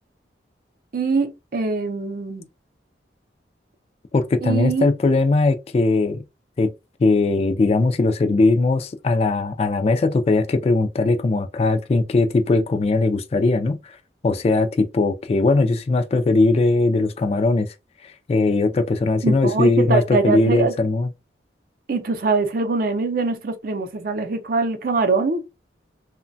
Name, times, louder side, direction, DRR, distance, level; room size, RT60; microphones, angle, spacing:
voice 1, 0.9-2.5 4.4-4.9 19.2-20.7 21.9-25.5, right 4 dB, 55° right, 0.5 m, -23 dB
voice 2, 4.1-6.2 6.6-6.7 7.0-13.8 14.2-17.7 18.0-21.1, left 3 dB, 35° left, 0.3 m, -19 dB
3.0 x 2.1 x 2.6 m
head